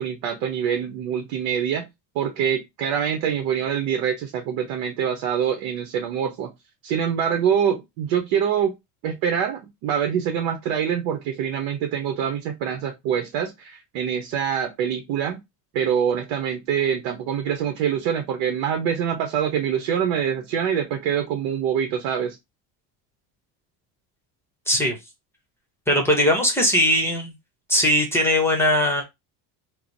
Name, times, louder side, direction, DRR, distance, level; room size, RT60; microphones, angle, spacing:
voice 1, 0.0-1.9 2.1-6.5 6.8-8.7 9.0-15.4 15.7-22.4, right 8 dB, 75° right, 0.8 m, -25 dB
voice 2, 24.7-25.0 25.9-27.3 27.7-29.0, equal, 5° left, 0.8 m, -20 dB
3.0 x 2.0 x 3.9 m
cardioid pair, 140°, 42 cm